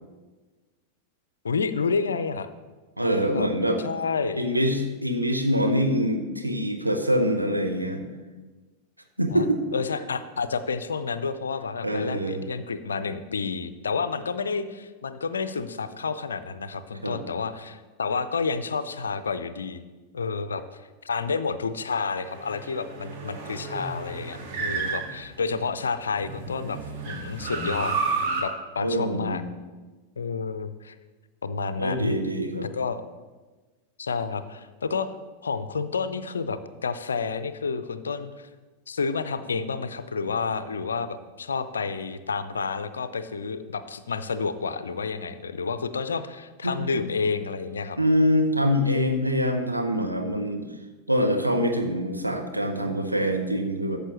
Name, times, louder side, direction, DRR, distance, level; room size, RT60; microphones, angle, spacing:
voice 1, 1.4-2.5 3.3-3.5 3.8-4.4 9.3-9.5 9.7-19.8 20.1-26.8 27.0-28.0 28.4-29.4 30.2-30.9 31.4-32.2 32.6-33.0 34.0-35.1 35.4-38.5 38.9-48.0, left 5 dB, 70° left, 12 dB, 0.5 m, -30 dB
voice 2, 3.0-3.8 4.3-8.0 9.2-9.6 11.8-12.4 17.0-17.2 28.8-29.4 31.8-32.7 46.6-46.9 48.0-50.6 51.1-54.0, equal, 90° right, 3 dB, 0.9 m, -24 dB
sound 1, 22.2-25.7 26.2-28.4, right 4 dB, 45° right, 1.6 m, -31 dB
13.5 x 6.7 x 3.1 m, 1.3 s
figure-of-eight pair, 90°, 0 cm